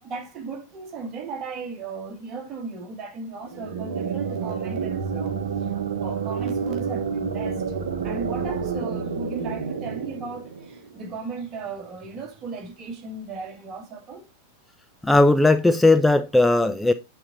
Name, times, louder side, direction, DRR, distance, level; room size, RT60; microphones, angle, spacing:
voice 1, 0.0-7.8 8.0-14.2, right 4 dB, 30° right, 1.9 m, -36 dB
sound 1, 3.5-11.1, right 6 dB, 65° right, 1.0 m, -29 dB
voice 2, 15.0-16.9, left 2 dB, 5° left, 0.4 m, -17 dB
8.6 x 4.8 x 3.9 m
figure-of-eight pair, 90°, 0 cm